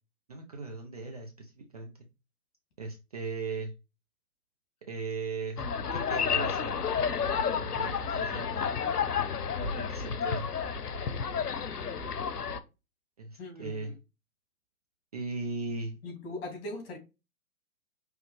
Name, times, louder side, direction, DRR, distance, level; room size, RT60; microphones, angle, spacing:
voice 1, 0.3-1.9 2.8-3.7 4.9-5.6 5.9-6.7 7.3-8.7 9.6-10.5 13.2-13.9 15.1-16.0, right 4 dB, 25° right, 0.4 m, -38 dB
sound 1, 5.6-12.6, left 6 dB, 90° left, 0.8 m, -31 dB
voice 2, 13.4-13.9 16.0-17.0, left 2 dB, 40° left, 2.3 m, -40 dB
5.5 x 3.1 x 3.1 m
hypercardioid pair, 135°, 46 cm